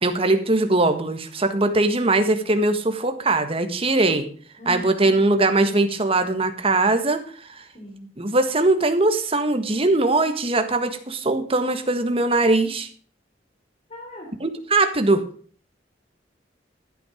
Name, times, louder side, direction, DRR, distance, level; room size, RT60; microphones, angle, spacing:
voice 1, 0.0-4.3 4.6-7.6 8.2-12.9 14.4-15.2, right 2 dB, 30° right, 8 dB, 1.6 m, -21 dB
voice 2, 4.6-5.1 7.7-8.1 13.9-14.3, right 1 dB, 35° left, -2 dB, 3.4 m, -38 dB
13.5 x 8.8 x 5.1 m, 0.44 s
head